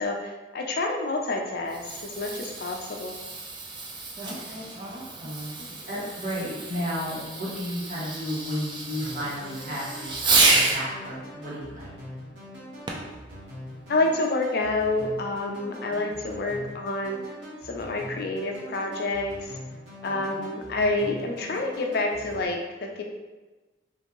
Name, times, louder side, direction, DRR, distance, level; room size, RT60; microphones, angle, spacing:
voice 1, 0.0-3.1 5.6-5.7 13.9-17.2 17.6-19.6 20.0-23.0, left 2 dB, 55° left, 2 dB, 0.5 m, -28 dB
Fireworks, 1.5-10.8 12.9-13.2 13.9-14.0, right 3 dB, 25° right, 0.3 m, -29 dB
voice 2, 4.1-5.5 5.9-11.9 15.9-16.1 20.0-20.3, equal, 45° right, -7 dB, 1.2 m, -34 dB
sound 1, 9.0-22.5, equal, 75° right, 1.3 m, -42 dB
3.6 x 2.5 x 3.0 m, 1.2 s
head